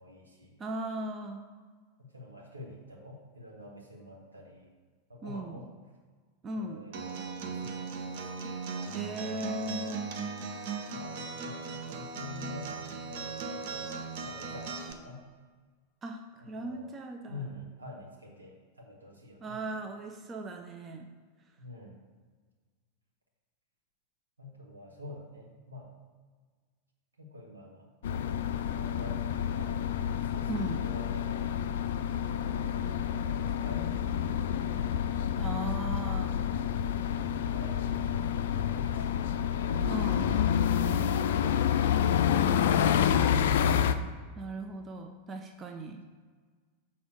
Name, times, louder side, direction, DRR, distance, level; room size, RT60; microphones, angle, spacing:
voice 1, 0.0-0.6 2.0-4.7 5.1-5.7 6.5-8.5 10.9-15.2 16.4-16.9 17.3-19.6 21.6-22.0 24.4-25.9 27.2-27.9 28.7-29.8 30.1-31.5 32.5-35.0 37.1-37.8 38.5-39.9, left 2 dB, 80° right, -2 dB, 1.8 m, -48 dB
voice 2, 0.6-1.5 5.2-5.6 6.4-6.8 8.9-10.1 16.0-17.4 19.4-21.1 30.5-30.8 35.4-36.4 39.9-40.3 44.4-46.0, right 1 dB, 25° right, 4 dB, 0.6 m, -38 dB
Acoustic guitar, 6.9-14.9, right 5 dB, 50° right, 0.8 m, -38 dB
sound 1, 28.0-44.0, left 9 dB, 60° left, 0.4 m, -28 dB
7.0 x 4.1 x 6.4 m, 1.5 s
figure-of-eight pair, 90°, 0 cm